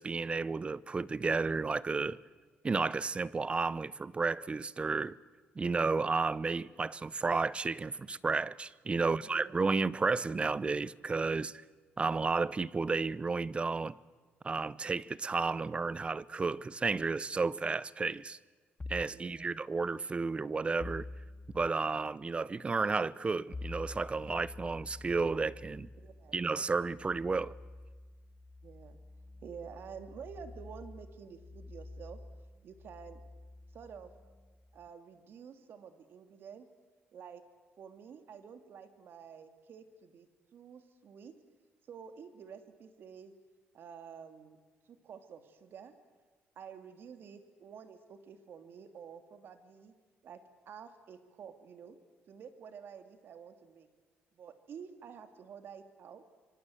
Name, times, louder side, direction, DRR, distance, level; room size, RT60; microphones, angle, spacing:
voice 1, 0.0-2.2 2.6-5.2 5.6-11.6 12.0-13.9 14.4-18.4 18.9-21.1 21.5-25.9 26.3-27.6, right 4 dB, 25° right, 0.7 m, -32 dB
voice 2, 9.0-9.6 19.1-19.6 26.0-26.4 28.6-29.0 29.4-32.2 32.6-33.2 33.7-34.1 34.7-36.7 37.1-37.4 37.8-41.3 41.9-43.3 43.7-44.6 44.9-46.0 46.6-49.9 50.2-52.0 52.3-53.9 54.3-56.2, right 7 dB, 60° right, 2.6 m, -50 dB
sound 1, 18.8-19.2 20.8-21.7 23.5-34.9, left 2 dB, 20° left, 0.9 m, -48 dB
26.0 x 24.0 x 7.9 m
cardioid pair, 90°, 4 cm